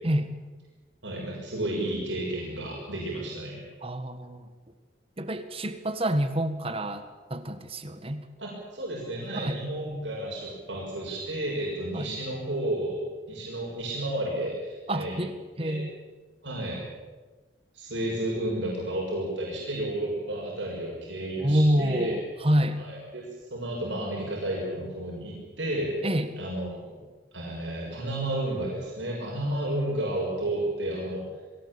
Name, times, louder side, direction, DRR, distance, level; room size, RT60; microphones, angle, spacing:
voice 1, 1.0-3.6 8.4-13.0 13.3-15.2 15.6-15.8 16.4-16.9 17.7-22.2 22.8-23.2 23.5-25.9 26.4-27.0 27.3-31.3, right 1 dB, 85° right, -3 dB, 6.4 m, -32 dB
voice 2, 3.8-4.5 5.2-8.2 9.3-9.6 11.9-12.1 14.9-15.9 21.4-22.8 26.0-26.4, equal, 30° right, 10 dB, 1.7 m, -27 dB
22.5 x 18.0 x 8.7 m, 1.3 s
head